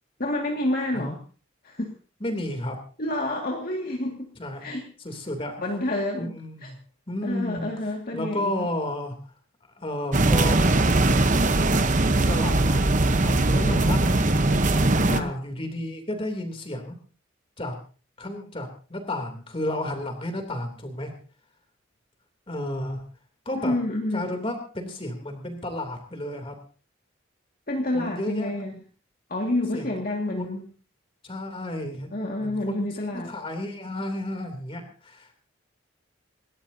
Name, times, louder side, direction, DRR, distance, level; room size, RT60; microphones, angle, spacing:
voice 1, 0.2-1.2 1.6-1.9 3.0-4.3 4.6-4.9 5.6-6.3 6.6-6.7 7.2-8.7 13.6-14.0 15.1-15.4 23.6-24.3 27.7-28.7 29.3-30.7 32.1-33.3, left 1 dB, 45° left, 0 dB, 2.1 m, -29 dB
voice 2, 2.2-2.7 4.4-4.7 5.0-5.6 6.2-6.7 7.1-7.7 8.1-9.2 9.7-11.1 12.3-12.8 13.2-14.3 15.1-17.0 17.6-17.7 18.2-21.1 22.5-23.0 23.4-23.7 24.1-26.5 27.9-28.7 29.7-30.0 30.4-30.6 31.2-32.1 32.4-32.9 33.2-35.3, left 1 dB, 25° left, 5 dB, 3.1 m, -32 dB
sound 1, 10.1-15.2, right 2 dB, 40° right, 1.0 m, -20 dB
27.5 x 13.0 x 2.8 m, 0.37 s
head